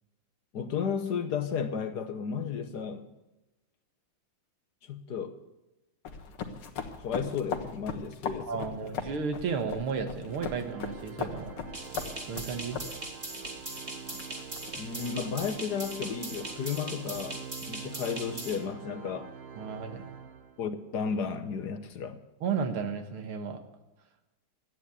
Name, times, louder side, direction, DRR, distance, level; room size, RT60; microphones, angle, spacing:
voice 1, 0.5-3.1 4.8-5.4 7.0-8.9 14.8-19.3 20.6-22.2, left 6 dB, 60° left, 1.3 m, -33 dB
sound 1, 6.0-17.3, left 6 dB, 90° left, 2.4 m, -40 dB
voice 2, 8.5-11.5 12.3-12.8 19.6-20.0 22.4-23.6, right 5 dB, 85° right, 2.3 m, -33 dB
Organ, 10.3-20.9, right 7 dB, 65° right, 0.6 m, -46 dB
sound 2, 11.7-18.6, right 2 dB, 20° right, 2.0 m, -40 dB
13.5 x 9.4 x 8.3 m
omnidirectional pair, 2.3 m